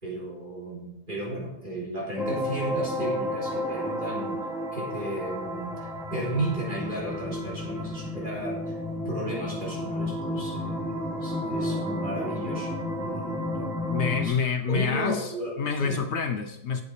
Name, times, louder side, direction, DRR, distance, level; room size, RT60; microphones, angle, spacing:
voice 1, 0.0-4.4 4.7-8.8 9.1-13.9 14.2-14.4 14.7-16.0, right 1 dB, 40° right, -5 dB, 3.8 m, -34 dB
sound 1, 2.2-14.3, left 1 dB, ahead, 1.4 m, -32 dB
voice 2, 13.9-16.8, left 6 dB, 65° left, 7 dB, 1.0 m, -28 dB
8.4 x 8.1 x 5.0 m, 0.82 s
omnidirectional pair, 1.3 m